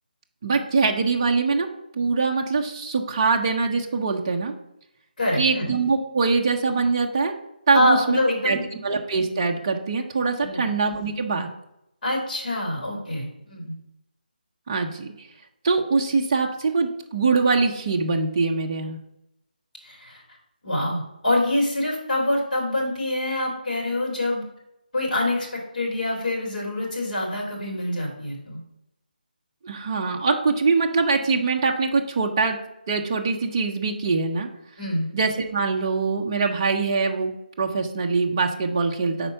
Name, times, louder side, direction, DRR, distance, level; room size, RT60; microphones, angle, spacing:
voice 1, 0.4-1.7 2.0-4.5 5.4-7.3 7.7-8.2 8.4-8.6 8.8-11.5 14.7-15.1 15.6-19.0 29.6-32.6 32.9-34.5 35.1-37.3 37.6-39.3, right 4 dB, 25° right, 2 dB, 0.6 m, -23 dB
voice 2, 5.2-5.7 7.7-8.6 10.4-10.7 12.0-13.7 19.8-20.2 20.6-24.4 24.9-28.6 34.8-35.1, left 1 dB, 50° left, -2 dB, 2.8 m, -25 dB
5.6 x 4.3 x 5.5 m, 0.83 s
figure-of-eight pair, 170°, 5 cm